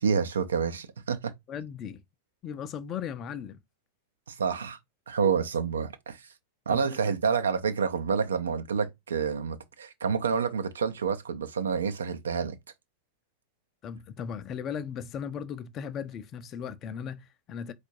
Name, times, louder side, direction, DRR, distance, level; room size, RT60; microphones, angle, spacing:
voice 1, 0.0-1.3 4.3-4.8 5.1-6.2 6.7-12.6, right 6 dB, 70° right, 0.7 m, -28 dB
voice 2, 1.5-2.0 2.4-3.6 6.7-6.8 7.0-7.1 13.8-17.7, left 7 dB, 30° left, 0.6 m, -37 dB
4.4 x 2.4 x 4.4 m
figure-of-eight pair, 90°, 0 cm